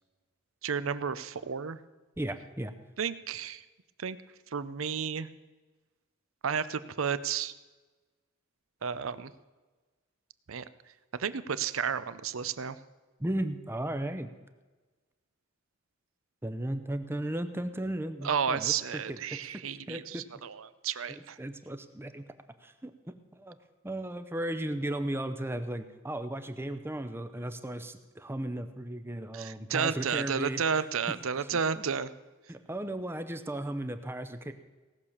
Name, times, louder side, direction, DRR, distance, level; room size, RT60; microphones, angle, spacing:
voice 1, 0.6-1.8 3.0-3.6 4.0-4.2 4.5-5.3 6.4-7.5 8.8-9.3 10.5-10.6 11.2-12.8 18.2-21.4 29.3-32.1, right 6 dB, 80° right, 15 dB, 0.7 m, -32 dB
voice 2, 2.2-2.7 13.2-14.3 16.4-19.2 19.9-20.2 21.1-22.2 22.6-22.9 23.3-23.6 23.8-30.9 31.4-31.6 32.5-34.5, right 1 dB, 10° right, 9 dB, 0.6 m, -35 dB
17.5 x 6.6 x 7.2 m, 1.3 s
head